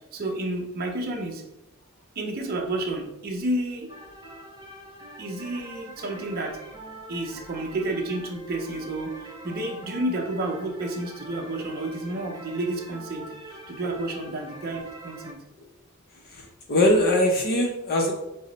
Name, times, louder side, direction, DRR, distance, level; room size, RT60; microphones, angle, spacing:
voice 1, 0.1-1.4 2.2-3.9 5.2-6.6 7.1-15.4, right 1 dB, 45° right, 1 dB, 0.6 m, -30 dB
sound 1, 3.9-15.3, right 1 dB, 20° right, 0.9 m, -44 dB
voice 2, 16.2-18.1, left 1 dB, 45° left, 0 dB, 0.5 m, -22 dB
5.2 x 2.0 x 3.8 m, 0.93 s
head